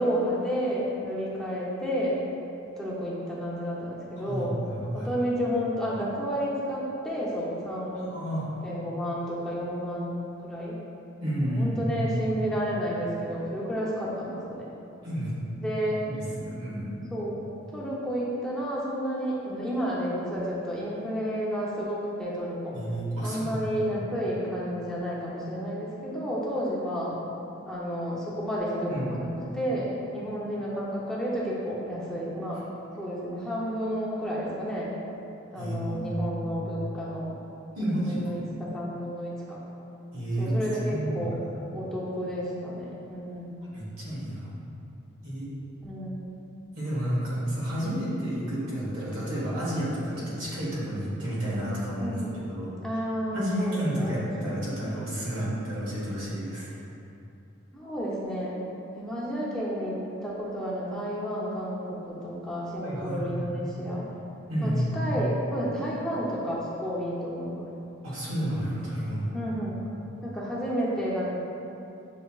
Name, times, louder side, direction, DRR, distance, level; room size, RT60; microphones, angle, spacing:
voice 1, 0.0-2.3 2.8-4.6 4.9-8.1 8.6-10.8 11.6-14.7 15.6-16.0 17.1-17.5 17.7-22.7 23.2-27.2 27.6-32.6 33.0-34.9 35.5-37.3 37.8-39.6 40.4-41.4 41.7-43.5 45.8-46.2 52.0-52.4 52.8-54.6 55.5-55.6 57.7-58.6 58.9-64.1 64.6-67.7 69.3-69.9 70.2-71.3, equal, 5° left, -7 dB, 0.6 m, -31 dB
voice 2, 4.2-5.1 8.1-8.5 11.2-12.1 15.0-15.3 16.0-16.9 22.7-23.7 28.9-29.1 35.5-36.1 37.7-38.4 40.1-40.6 40.9-41.4 43.6-44.5 45.2-45.5 46.7-52.7 53.3-56.7 62.8-63.5 64.5-65.1 68.0-69.3, equal, 90° right, -7 dB, 1.3 m, -31 dB
6.6 x 2.8 x 2.3 m, 2.7 s
head